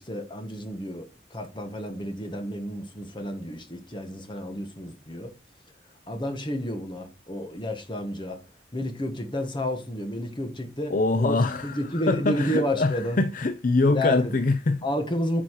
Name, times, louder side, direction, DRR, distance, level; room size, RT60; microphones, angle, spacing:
voice 1, 0.0-5.3 6.1-8.4 8.7-10.9 11.2-13.2 13.9-14.4 14.8-15.4, left 1 dB, 25° left, 1.5 m, -31 dB
voice 2, 10.9-14.8, left 3 dB, 45° left, 0.5 m, -24 dB
10.0 x 6.0 x 4.8 m
head